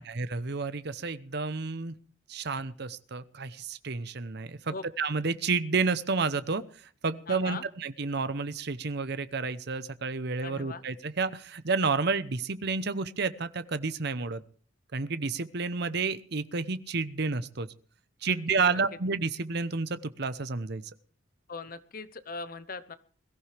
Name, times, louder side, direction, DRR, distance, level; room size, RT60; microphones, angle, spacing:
voice 1, 0.0-1.9 2.3-6.6 7.0-14.4 14.9-17.7 18.2-20.8, right 4 dB, 60° right, 13 dB, 0.8 m, -30 dB
voice 2, 7.3-7.6 10.4-10.8 18.2-18.4 18.7-18.8 21.5-23.0, left 4 dB, 45° left, 12 dB, 0.9 m, -40 dB
22.0 x 14.5 x 3.4 m, 0.44 s
head